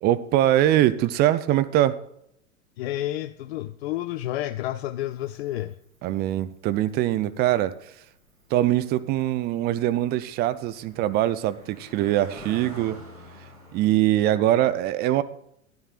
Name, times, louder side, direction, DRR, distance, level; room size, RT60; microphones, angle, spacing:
voice 1, 0.0-2.0 6.0-7.8 8.5-13.0 13.7-15.2, right 13 dB, 25° right, 0.4 m, -22 dB
voice 2, 2.8-5.8, left 14 dB, 50° left, 0.5 m, -30 dB
Cricket, 5.0-13.9, right 1 dB, 85° right, 4.0 m, -48 dB
13.0 x 10.5 x 2.4 m
figure-of-eight pair, 90°, 40 cm